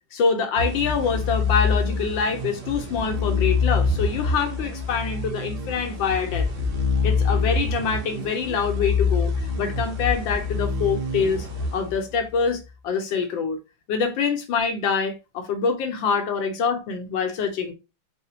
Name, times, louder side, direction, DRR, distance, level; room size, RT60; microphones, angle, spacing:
voice 1, 0.1-6.5 7.0-11.5 11.7-13.6 13.9-17.7, left 5 dB, 70° left, 1.3 m, -25 dB
sound 1, 0.6-12.4, left 4 dB, 75° right, 1.7 m, -26 dB
4.8 x 2.2 x 2.7 m
omnidirectional pair, 2.3 m